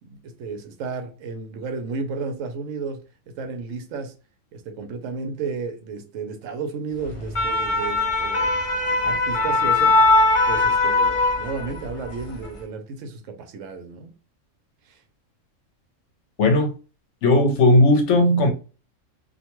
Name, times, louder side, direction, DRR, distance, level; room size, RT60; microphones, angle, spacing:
voice 1, 0.0-3.0 3.3-4.1 4.5-8.5 9.0-10.0 10.5-14.1 14.9-15.0, right 4 dB, 80° right, 1.0 m, -32 dB
sound 1, 7.1-11.9 12.2-12.5, left 2 dB, 45° left, 0.4 m, -20 dB
voice 2, 16.4-16.7 17.2-18.5, left 1 dB, 70° left, 0.9 m, -16 dB
2.5 x 2.1 x 2.9 m
omnidirectional pair, 1.3 m